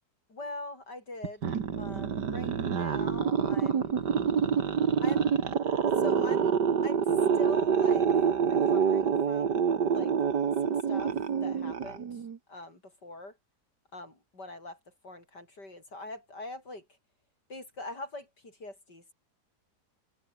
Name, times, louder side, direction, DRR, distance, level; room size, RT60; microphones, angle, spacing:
voice 1, 0.3-4.0 5.0-5.3 5.9-6.6 6.8-10.1 10.6-13.4 13.9-17.0 17.5-19.1, left 2 dB, 85° left, 8.6 m, -43 dB
sound 1, 1.2-12.4, right 7 dB, 80° right, 2.4 m, -27 dB
open air
omnidirectional pair, 1.8 m